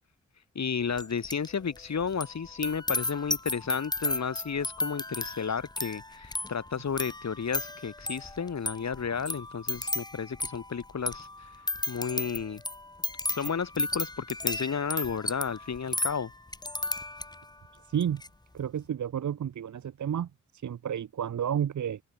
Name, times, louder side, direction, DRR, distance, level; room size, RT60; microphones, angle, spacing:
voice 1, 0.5-11.5 11.9-12.6 13.3-16.3, left 6 dB, 60° left, 3.1 m, -32 dB
sound 1, 1.0-1.5 1.7-17.5 17.9-18.3, left 2 dB, 15° left, 1.1 m, -34 dB
voice 2, 17.9-18.2 18.5-22.0, right 9 dB, 65° right, 1.0 m, -31 dB
open air
cardioid pair, 50°, 31 cm